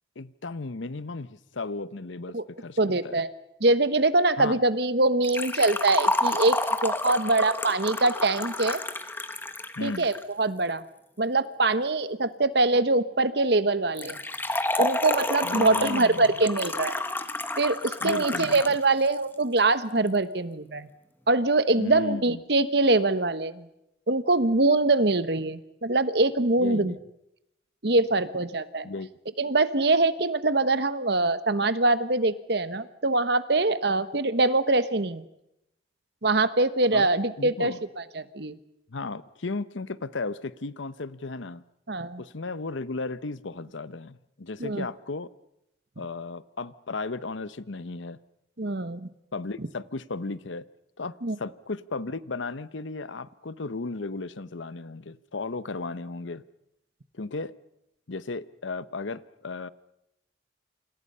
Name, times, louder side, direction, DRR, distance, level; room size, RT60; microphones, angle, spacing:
voice 1, 0.2-3.2 4.4-4.6 9.8-10.1 15.4-16.3 18.0-18.6 21.8-22.4 26.6-27.0 28.8-29.1 36.9-37.1 37.4-37.8 38.9-41.6 42.2-45.3 46.0-48.2 49.3-50.7 51.0-56.4 57.1-57.6 58.1-59.7, left 3 dB, 75° left, 0.9 m, -35 dB
voice 2, 2.8-3.3 3.6-8.8 9.8-10.8 11.2-14.2 14.8-17.0 17.6-20.9 21.3-23.7 24.1-26.9 27.8-28.9 29.4-35.2 36.2-38.5 41.9-42.2 44.6-44.9 48.6-49.1 49.6-49.7 51.2-51.4, right 2 dB, 55° right, 1.2 m, -24 dB
Liquid, 5.2-10.2 14.0-18.8 19.1-19.2 20.1-20.2, left 2 dB, 10° left, 1.1 m, -30 dB
28.5 x 26.5 x 5.6 m
head